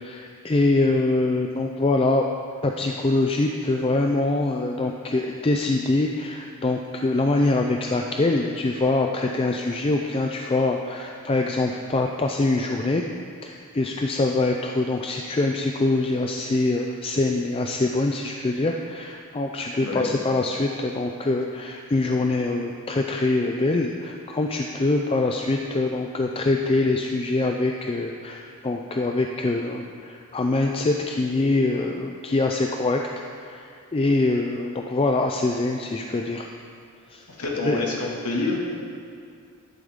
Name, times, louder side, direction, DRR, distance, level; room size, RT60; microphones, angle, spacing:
voice 1, 0.0-2.3 2.6-13.0 13.4-33.0 33.4-36.5 37.1-37.2 37.6-37.8, left 2 dB, 25° left, 2 dB, 0.4 m, -24 dB
voice 2, 37.4-38.6, left 2 dB, 90° left, -3 dB, 2.2 m, -27 dB
12.0 x 10.5 x 3.7 m, 2.3 s
head